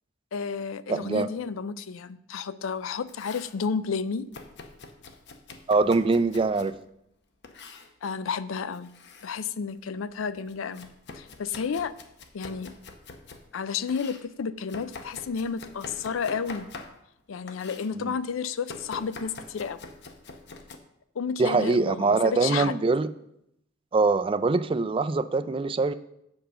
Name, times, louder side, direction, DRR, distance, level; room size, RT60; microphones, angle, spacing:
voice 1, 0.3-4.3 8.0-8.9 9.2-10.9 11.1-12.0 12.3-12.8 13.5-16.7 17.3-19.8 21.2-22.8, left 6 dB, 75° left, 15 dB, 0.4 m, -31 dB
voice 2, 0.9-1.3 5.7-6.8 17.9-18.1 21.4-23.1 23.9-25.9, right 3 dB, 25° right, 12 dB, 0.3 m, -23 dB
Domestic sounds home sounds, 2.8-3.6 4.3-6.8 7.4-7.9 8.7-9.3 9.7-13.5 13.9-17.2 17.5-17.9 18.7-20.8, left 3 dB, 60° left, 0.8 m, -45 dB
8.0 x 4.9 x 6.8 m, 0.77 s
head